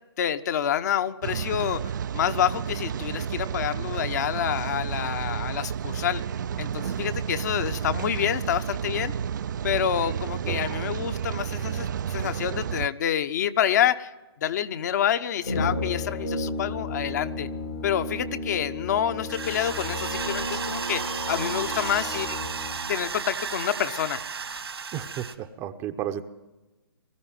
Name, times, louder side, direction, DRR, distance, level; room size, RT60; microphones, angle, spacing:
voice 1, 0.2-1.8 2.1-6.2 6.6-9.1 9.6-14.1 14.4-17.5 17.8-22.4 22.9-24.2, left 10 dB, 45° left, 9 dB, 1.1 m, -27 dB
Rain, 1.2-12.9, right 8 dB, 50° right, 0.6 m, -31 dB
Brass instrument, 15.4-22.9, left 2 dB, 80° left, 3.7 m, -33 dB
sound 1, 19.3-25.3, right 5 dB, 75° right, 2.0 m, -33 dB
voice 2, 24.9-26.2, right 11 dB, 20° right, 9 dB, 0.8 m, -33 dB
21.5 x 13.5 x 9.2 m, 1.1 s
figure-of-eight pair, 140°, 13 cm